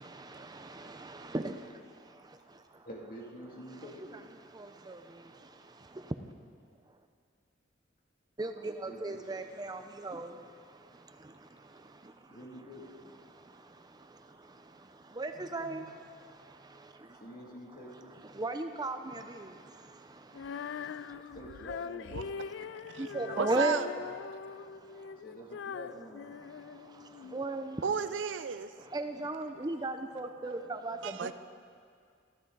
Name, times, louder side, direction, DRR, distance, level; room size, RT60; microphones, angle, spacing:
voice 1, 2.8-4.2 8.8-9.2 12.3-12.8 15.6-15.8 17.2-18.1 21.3-22.2 25.2-26.3, equal, 45° left, -2 dB, 2.6 m, -47 dB
voice 2, 8.8-10.3 15.2-15.8 18.4-19.0 23.1-23.8 27.3-27.7 28.9-31.0, right 2 dB, 20° right, 7 dB, 0.6 m, -34 dB
Female singing, 20.3-27.4, left 6 dB, 65° left, 0.3 m, -42 dB
voice 3, 23.4-23.9 27.8-28.7 30.5-30.6 31.0-31.3, right 5 dB, 70° right, 12 dB, 0.6 m, -33 dB
23.5 x 14.5 x 4.0 m, 2.2 s
head